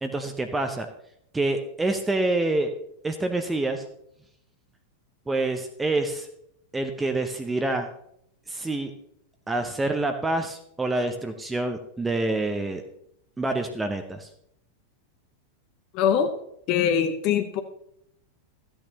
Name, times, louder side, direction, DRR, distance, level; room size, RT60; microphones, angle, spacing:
voice 1, 0.0-0.9 1.3-2.7 3.0-3.8 5.3-6.3 6.7-7.9 8.5-8.9 9.5-12.8 13.4-14.3, right 2 dB, 10° right, 6 dB, 0.8 m, -27 dB
voice 2, 15.9-16.3 16.7-17.6, left 8 dB, 40° left, 8 dB, 0.8 m, -22 dB
13.5 x 8.8 x 2.9 m, 0.72 s
figure-of-eight pair, 90°, 0 cm